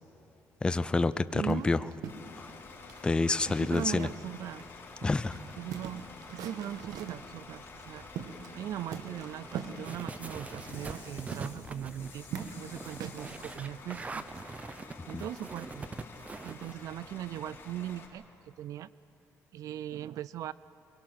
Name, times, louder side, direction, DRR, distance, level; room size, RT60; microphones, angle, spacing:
voice 1, 0.6-1.8 2.4-2.5 3.0-4.1 5.0-5.4 15.1-15.2, left 3 dB, 15° left, 13 dB, 0.5 m, -28 dB
voice 2, 1.3-1.8 3.5-4.6 5.6-14.3 15.1-15.9 16.4-18.9 19.5-20.5, right 11 dB, 65° right, 18 dB, 0.4 m, -40 dB
sound 1, 1.4-4.3 4.6-4.7 5.0-7.3 7.8-8.6 8.9-13.4, right 7 dB, 85° right, 1.4 m, -43 dB
Bus / Idling, 2.1-18.1, left 4 dB, 40° left, 2.9 m, -49 dB
sound 2, 9.8-16.7, right 3 dB, 20° right, 0.7 m, -43 dB
23.0 x 23.0 x 6.1 m, 3.0 s
cardioid pair, 120°, 6 cm